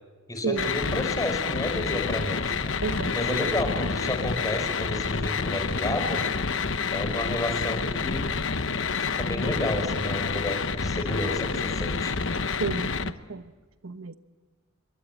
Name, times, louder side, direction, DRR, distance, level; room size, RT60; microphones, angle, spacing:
voice 1, 0.3-2.7 3.1-6.2 6.9-8.3 9.0-12.1, left 1 dB, 15° left, 5 dB, 5.1 m, -31 dB
sound 1, 0.6-13.1, left 5 dB, 65° left, 1.0 m, -28 dB
voice 2, 2.8-3.5 12.6-13.5 13.8-14.2, right 4 dB, 80° right, 10 dB, 1.0 m, -32 dB
26.5 x 23.5 x 8.9 m, 1.3 s
head